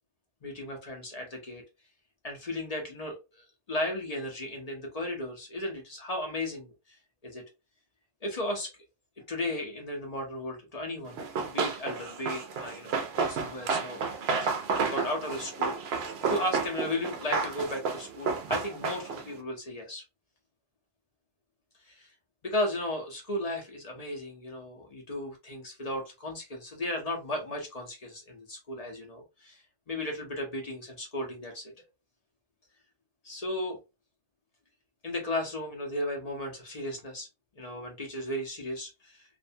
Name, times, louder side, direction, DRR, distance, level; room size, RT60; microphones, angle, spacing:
voice 1, 0.4-1.6 2.2-3.2 3.7-6.7 7.2-7.4 8.2-8.7 9.3-14.5 14.9-20.0 21.9-22.1 22.4-31.7 33.2-33.8 35.0-37.3 37.6-39.2, left 1 dB, 45° left, 2 dB, 0.5 m, -35 dB
Run, 11.2-19.3, right 5 dB, 65° right, 0.7 m, -31 dB
2.5 x 2.1 x 2.6 m, 0.26 s
omnidirectional pair, 1.4 m